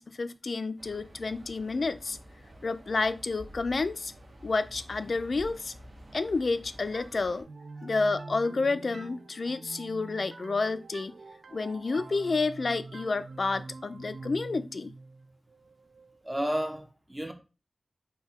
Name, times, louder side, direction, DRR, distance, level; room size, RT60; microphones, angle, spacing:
voice 1, 0.0-2.2 2.6-4.1 4.4-5.7 6.1-7.5 7.8-11.2 11.5-14.9, left 3 dB, 65° left, 0.3 m, -30 dB
sound 1, 0.8-7.4, equal, 65° right, 1.0 m, -50 dB
sound 2, 6.9-16.5, right 3 dB, 85° right, 0.3 m, -46 dB
voice 2, 16.2-17.3, equal, 20° right, 0.7 m, -32 dB
4.0 x 2.2 x 4.0 m
cardioid pair, 50°, 0 cm